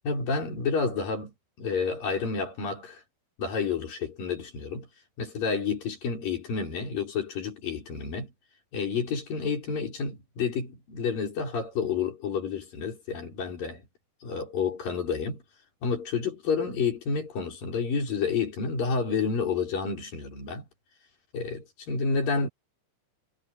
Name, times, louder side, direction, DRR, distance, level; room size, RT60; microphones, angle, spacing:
voice 1, 0.0-3.0 3.4-4.9 5.2-8.3 8.7-13.8 14.2-15.4 15.8-20.6 21.3-22.5, left 5 dB, 45° left, 7.0 m, -30 dB
omnidirectional pair, 5.6 m